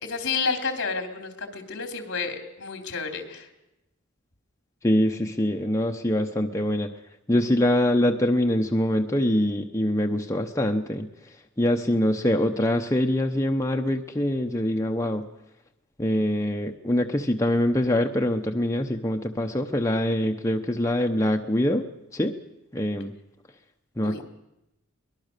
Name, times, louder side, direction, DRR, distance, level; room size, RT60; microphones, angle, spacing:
voice 1, 0.0-3.5 24.0-24.2, left 4 dB, 60° left, 6 dB, 3.2 m, -30 dB
voice 2, 4.8-6.9 7.3-11.1 11.6-15.2 16.0-21.9 22.1-22.3 22.7-23.1 24.0-24.2, left 1 dB, 15° left, 3 dB, 0.8 m, -24 dB
23.0 x 20.0 x 6.7 m, 0.92 s
head